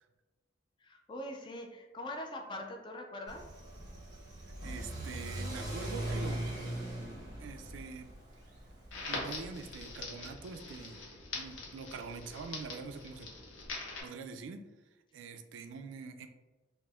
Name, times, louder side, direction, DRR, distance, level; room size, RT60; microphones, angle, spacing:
voice 1, 0.8-3.4, left 1 dB, 25° left, 3 dB, 0.3 m, -42 dB
Car / Accelerating revving vroom, 3.3-10.0, right 1 dB, 20° right, 0.6 m, -41 dB
voice 2, 4.5-6.5 7.4-8.2 9.1-13.3 14.0-14.6 15.1-16.3, right 4 dB, 75° right, 8 dB, 0.3 m, -45 dB
Crackle, 8.9-14.0, left 3 dB, 90° left, 0.8 m, -43 dB
4.2 x 2.1 x 2.3 m, 1.2 s
head